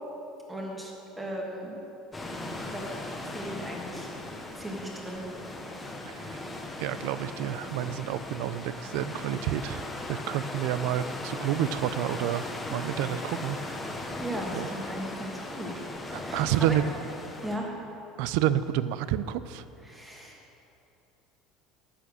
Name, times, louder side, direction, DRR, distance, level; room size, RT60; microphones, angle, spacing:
voice 1, 0.5-1.7 2.7-2.8 3.2-4.1 4.5-5.2 14.2-15.8 16.2-16.8 17.4-17.7 19.8-20.4, right 1 dB, 10° right, -1 dB, 1.6 m, -37 dB
sound 1, 2.1-17.6, left 2 dB, 10° left, 1.0 m, -38 dB
voice 2, 6.8-9.8 10.1-13.6 14.5-14.7 16.1-16.8 18.2-19.6, right 11 dB, 70° right, 14 dB, 0.4 m, -29 dB
10.0 x 8.7 x 6.4 m, 2.8 s
cardioid pair, 160°, 0 cm